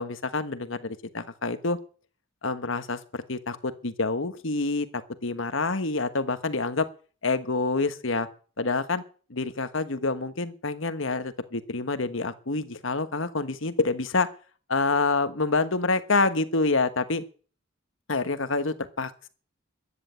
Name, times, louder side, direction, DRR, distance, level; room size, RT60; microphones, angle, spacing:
voice 1, 0.0-1.8 2.4-6.9 7.2-8.3 8.6-9.0 9.3-14.3 14.7-17.2 18.1-19.3, left 3 dB, 75° left, 11 dB, 1.3 m, -27 dB
14.0 x 9.9 x 8.2 m, 0.41 s
head